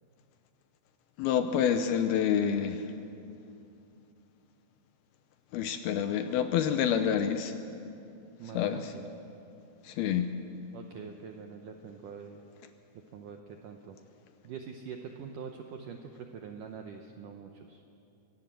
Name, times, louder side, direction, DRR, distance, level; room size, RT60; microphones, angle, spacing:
voice 1, 1.2-2.9 5.5-7.5 8.5-8.9 9.8-10.3, left 8 dB, 80° left, 8 dB, 2.5 m, -28 dB
voice 2, 8.4-9.0 10.7-12.4 13.1-14.0 14.4-17.8, right 6 dB, 75° right, 4 dB, 1.9 m, -44 dB
23.5 x 17.0 x 7.6 m, 2.6 s
omnidirectional pair, 4.9 m